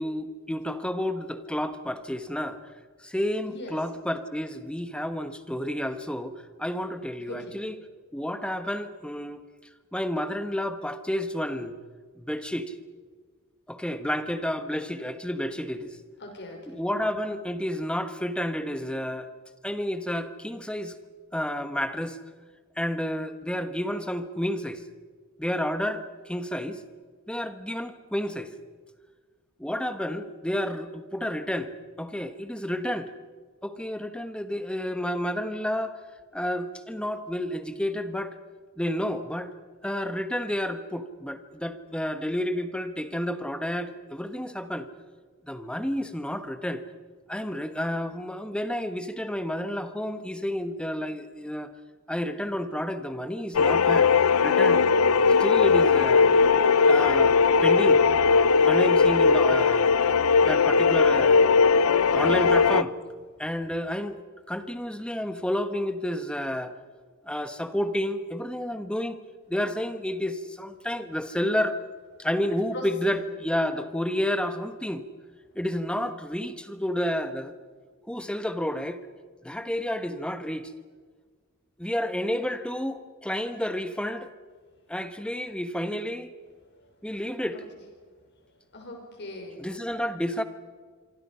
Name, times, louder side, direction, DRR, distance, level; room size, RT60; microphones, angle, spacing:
voice 1, 0.0-2.6 3.0-7.7 8.1-9.4 9.9-11.8 12.2-12.7 13.7-16.0 16.7-19.3 19.6-21.0 21.3-22.2 22.8-24.8 25.4-26.8 27.3-28.5 29.6-31.7 32.0-33.1 33.6-36.0 36.3-38.3 38.8-39.5 39.8-44.9 45.4-46.8 47.3-51.7 52.1-54.1 54.4-54.9 55.4-56.3 56.8-58.0 58.6-60.0 60.4-61.5 62.1-62.9 63.4-64.2 64.5-66.7 67.2-69.2 69.5-71.8 72.2-75.0 75.5-77.5 78.1-79.0 79.4-80.7 81.8-84.3 84.9-86.3 87.0-87.6 89.6-90.4, equal, 5° left, 10 dB, 1.2 m, -30 dB
voice 2, 3.4-3.8 7.2-7.5 16.2-16.8 62.2-62.5 72.7-73.3 86.6-86.9 87.5-87.6 88.5-89.7, left 2 dB, 55° left, 3 dB, 5.8 m, -40 dB
sound 1, 53.5-62.8, left 5 dB, 90° left, 0.6 m, -19 dB
26.5 x 24.5 x 5.7 m, 1.5 s
head